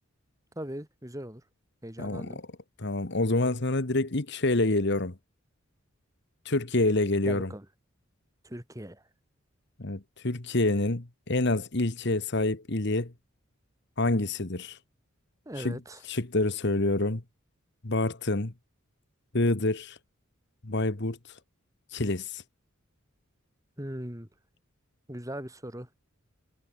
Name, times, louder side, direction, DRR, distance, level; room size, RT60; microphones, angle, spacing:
voice 1, 0.6-1.4 1.8-2.4 7.3-7.7 8.4-9.0 15.5-16.0 23.8-24.3 25.1-25.9, equal, 15° right, 4.1 m, -39 dB
voice 2, 2.0-2.4 2.8-5.1 6.4-7.5 9.8-13.1 14.0-14.8 15.6-15.8 16.1-17.2 17.8-18.5 19.3-20.0 20.6-21.2 21.9-22.4, left 2 dB, 55° left, 1.5 m, -27 dB
head